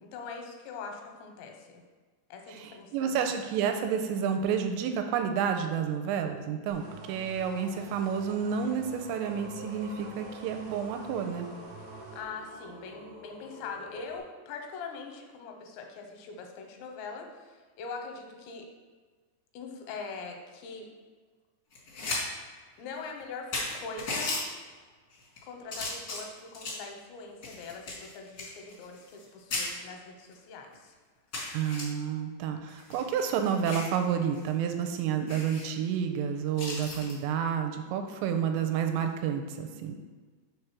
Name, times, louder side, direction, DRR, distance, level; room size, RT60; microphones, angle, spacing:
voice 1, 0.0-1.8 2.3-3.5 12.1-18.7 19.5-20.8 22.8-24.4 25.4-30.9, left 4 dB, 85° left, 3 dB, 2.9 m, -42 dB
voice 2, 2.5-11.5 31.5-40.0, right 7 dB, 85° right, 6 dB, 2.7 m, -30 dB
sound 1, 6.7-12.2, right 2 dB, 65° right, 2.4 m, -48 dB
Singing, 9.1-14.2, left 2 dB, 45° right, 1.2 m, -48 dB
sound 2, 21.7-22.2 22.6-22.7 23.2-23.3 23.5-24.4 25.1-25.4 25.7-26.9 27.4-29.3 29.5-29.7 30.3-30.4 30.7-30.8 31.3-31.8 32.7-34.0 34.3-34.5 34.8-34.9 35.3-35.7 36.6-37.1 38.9-39.1, left 2 dB, 70° left, 1.0 m, -36 dB
6.2 x 3.3 x 5.8 m, 1.4 s
omnidirectional pair, 5.1 m